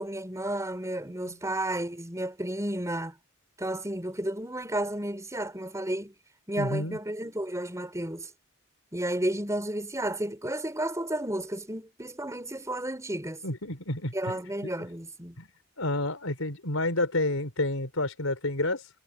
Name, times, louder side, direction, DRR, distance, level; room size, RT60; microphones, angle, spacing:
voice 1, 0.0-3.1 3.6-6.1 6.5-8.3 8.9-13.4 14.1-15.4, right 1 dB, 15° right, 6.0 m, -32 dB
voice 2, 6.6-7.0 13.4-14.7 15.4-15.5 15.8-18.9, left 2 dB, 80° left, 4.6 m, -30 dB
head